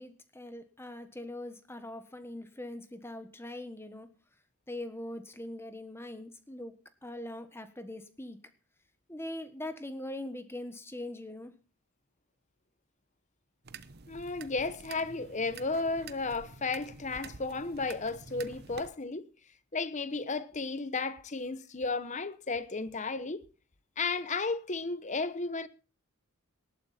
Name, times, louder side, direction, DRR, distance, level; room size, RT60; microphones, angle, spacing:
voice 1, 0.0-4.1 4.7-8.4 9.1-11.5, left 1 dB, 10° left, 1.3 m, -42 dB
sound 1, 13.6-18.9, right 5 dB, 45° right, 1.0 m, -48 dB
voice 2, 14.1-19.3 19.7-23.5 24.0-25.7, left 3 dB, 35° left, 0.9 m, -33 dB
19.0 x 12.5 x 4.3 m
head